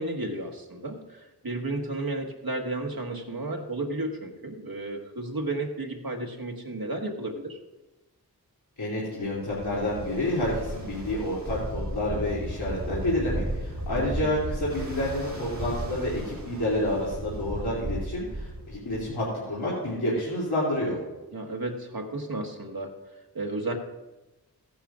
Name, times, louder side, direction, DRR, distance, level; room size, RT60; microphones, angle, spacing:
voice 1, 0.0-7.6 13.9-14.3 21.3-23.0 23.3-23.7, right 2 dB, 65° right, 3 dB, 1.6 m, -33 dB
voice 2, 8.8-21.0, left 1 dB, 85° left, -8 dB, 2.9 m, -29 dB
Ocean, 9.3-19.2, right 1 dB, 45° right, 3.2 m, -35 dB
16.5 x 10.0 x 2.5 m, 1.1 s
cardioid pair, 40°, 38 cm